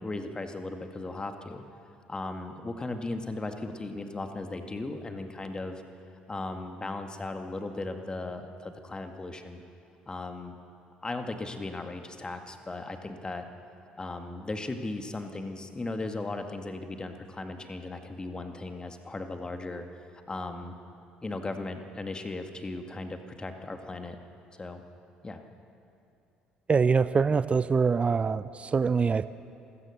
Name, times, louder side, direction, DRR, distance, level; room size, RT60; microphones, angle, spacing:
voice 1, 0.0-1.6 2.1-5.8 6.3-9.6 10.1-10.6 11.0-13.4 14.0-19.9 20.3-20.8 21.2-24.2 24.6-24.8 25.2-25.4, left 2 dB, 20° left, 6 dB, 2.0 m, -37 dB
voice 2, 26.7-29.3, right 5 dB, 25° right, 15 dB, 0.6 m, -24 dB
26.5 x 16.5 x 6.6 m, 2.6 s
figure-of-eight pair, 55°, 4 cm